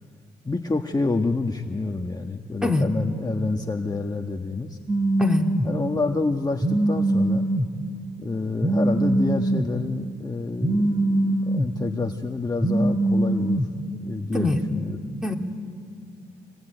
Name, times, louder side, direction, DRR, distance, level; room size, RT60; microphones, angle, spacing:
voice 1, 0.4-4.8 5.6-7.5 8.2-13.6 13.9-15.0, left 3 dB, 20° left, 3 dB, 1.5 m, -28 dB
voice 2, 2.6-2.9 5.2-5.4 14.3-14.6 15.2-15.3, left 2 dB, 5° right, 2 dB, 3.0 m, -22 dB
Telephone, 4.9-5.7 6.6-7.7 8.6-9.7 10.6-11.7 12.6-13.7, right 1 dB, 20° right, 3.6 m, -22 dB
25.5 x 21.0 x 9.2 m, 2.3 s
supercardioid pair, 60°, 19 cm